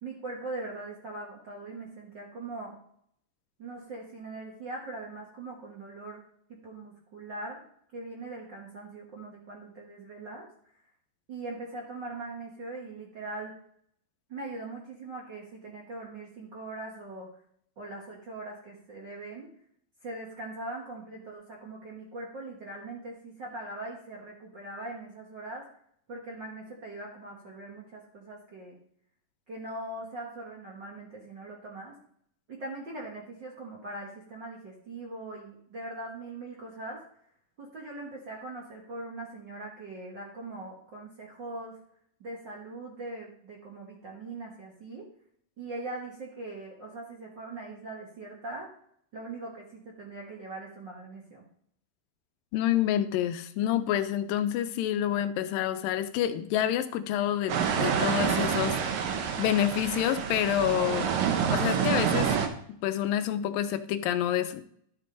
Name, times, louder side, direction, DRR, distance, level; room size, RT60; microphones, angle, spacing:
voice 1, 0.0-2.7 3.6-6.2 6.5-7.6 7.9-10.5 11.3-13.5 14.3-17.3 17.8-19.5 20.0-25.6 26.1-28.8 29.5-32.0 32.5-37.0 37.6-41.8 42.2-45.1 45.6-48.7 49.1-51.4, right 2 dB, 50° right, -2 dB, 1.5 m, -41 dB
voice 2, 52.5-59.1 59.4-61.1 61.5-62.3 62.8-64.6, left 11 dB, 85° left, 10 dB, 2.3 m, -28 dB
sound 1, 57.5-62.5, right 7 dB, 80° right, 2.6 m, -27 dB
12.0 x 6.8 x 3.9 m, 0.66 s
omnidirectional pair, 4.0 m